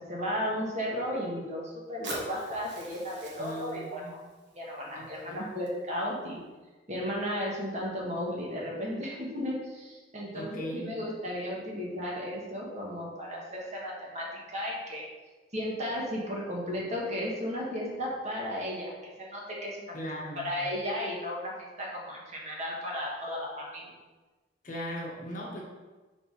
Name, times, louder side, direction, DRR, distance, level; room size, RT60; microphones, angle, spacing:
voice 1, 0.0-4.0 4.5-6.4 6.9-15.0 15.5-20.0 20.4-23.9, equal, 40° right, -3 dB, 1.5 m, -34 dB
Fire, 2.0-6.0, right 2 dB, 70° right, 1.4 m, -45 dB
voice 2, 3.4-4.1 4.9-5.4 10.3-11.0 19.9-20.5 24.6-25.6, equal, 45° left, -2 dB, 1.2 m, -38 dB
5.8 x 3.7 x 5.6 m, 1.2 s
head